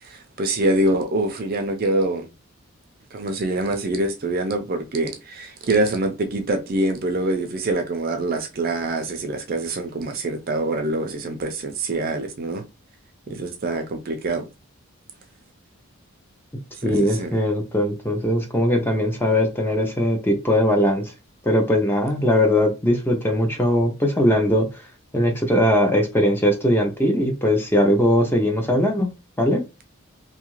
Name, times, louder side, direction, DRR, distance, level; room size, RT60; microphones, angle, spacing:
voice 1, 0.1-2.3 3.1-12.6 13.3-14.4 16.8-17.4, right 2 dB, 45° right, 0.4 m, -25 dB
voice 2, 16.8-21.1 21.4-24.7 25.1-29.1 29.4-29.6, equal, 10° left, 0.5 m, -20 dB
2.7 x 2.4 x 3.0 m
head